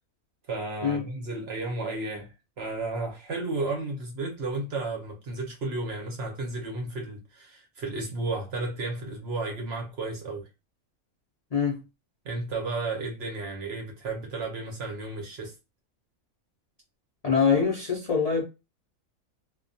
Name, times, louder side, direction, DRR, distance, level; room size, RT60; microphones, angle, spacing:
voice 1, 0.5-10.5 12.2-15.6, right 2 dB, 60° right, 0.8 m, -33 dB
voice 2, 11.5-11.8 17.2-18.4, left 6 dB, 50° left, 0.4 m, -24 dB
2.3 x 2.2 x 2.6 m
omnidirectional pair, 1.5 m